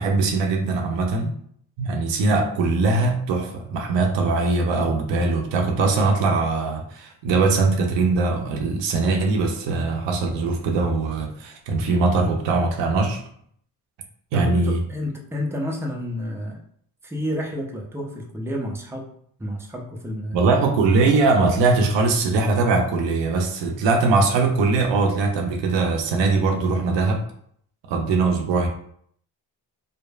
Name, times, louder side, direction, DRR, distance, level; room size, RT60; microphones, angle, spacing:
voice 1, 0.0-1.3 1.8-13.2 14.3-14.8 20.3-27.2 27.9-28.7, right 3 dB, 80° right, 3 dB, 0.6 m, -21 dB
voice 2, 14.3-16.6 17.0-19.1 19.4-20.5, equal, 5° right, 0 dB, 0.5 m, -30 dB
3.1 x 2.0 x 2.2 m, 0.63 s
supercardioid pair, 55°, 44 cm